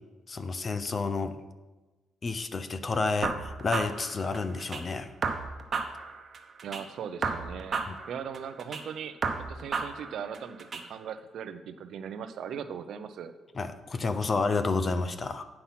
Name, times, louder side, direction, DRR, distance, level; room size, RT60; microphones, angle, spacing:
voice 1, 0.3-1.4 2.2-5.1 7.9-8.0 13.6-15.4, left 4 dB, 35° left, 10 dB, 0.6 m, -30 dB
sound 1, 3.2-4.8 5.2-6.8 7.2-8.8 9.2-10.8, right 4 dB, 40° right, 1.0 m, -33 dB
voice 2, 6.6-13.3, right 7 dB, 70° right, 10 dB, 0.6 m, -39 dB
8.7 x 5.8 x 5.8 m, 1.2 s
cardioid pair, 90°, 0 cm